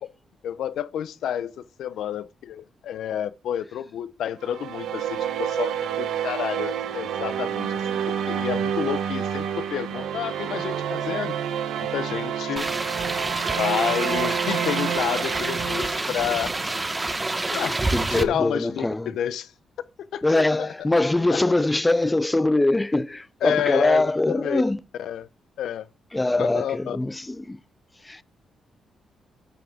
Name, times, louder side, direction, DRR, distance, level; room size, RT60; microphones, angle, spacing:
voice 1, 0.4-11.4 11.8-12.7 13.6-16.6 17.5-17.8 18.1-19.5 20.1-20.7 21.3-21.4 23.4-24.6 25.0-25.3 25.6-25.9 26.4-27.0, left 10 dB, 80° left, 0.6 m, -29 dB
sound 1, 4.4-16.8, right 9 dB, 90° right, 1.2 m, -29 dB
sound 2, 12.6-18.2, right 2 dB, 15° right, 0.9 m, -28 dB
voice 2, 17.9-19.1 20.2-24.8 26.1-27.6 28.0-28.2, left 2 dB, 15° left, 0.4 m, -23 dB
10.5 x 5.9 x 4.9 m
cardioid pair, 110°, 0 cm